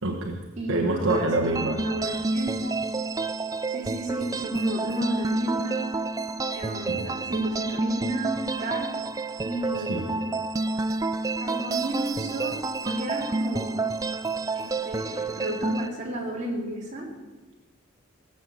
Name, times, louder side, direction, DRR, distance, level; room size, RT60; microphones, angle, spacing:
voice 1, 0.0-0.4 0.7-1.8 6.9-7.0 9.8-10.1, right 2 dB, 70° right, 1 dB, 1.3 m, -26 dB
voice 2, 0.6-1.4 1.8-2.9 3.7-5.9 6.5-8.9 9.4-10.3 11.4-13.9 14.6-17.1, right 1 dB, 35° right, -3 dB, 3.7 m, -32 dB
sound 1, 1.1-15.9, right 3 dB, 15° right, 0.4 m, -29 dB
18.5 x 7.8 x 7.1 m, 1.2 s
head